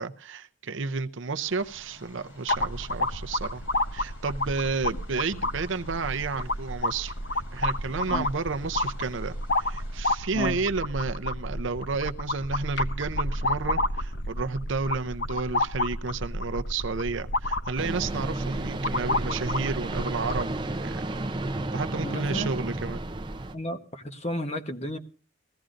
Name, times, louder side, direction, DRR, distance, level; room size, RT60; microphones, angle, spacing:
voice 1, 0.0-3.6 3.9-21.2 21.7-23.0, right 4 dB, 70° right, 0.6 m, -31 dB
sound 1, 1.4-10.0, left 1 dB, 80° left, 4.4 m, -52 dB
sound 2, 2.5-20.5, left 1 dB, 55° left, 0.9 m, -30 dB
sound 3, 17.8-23.5, right 2 dB, 25° right, 0.6 m, -32 dB
voice 2, 22.0-22.5 23.5-25.0, left 1 dB, 30° left, 1.1 m, -32 dB
20.0 x 15.5 x 2.6 m
head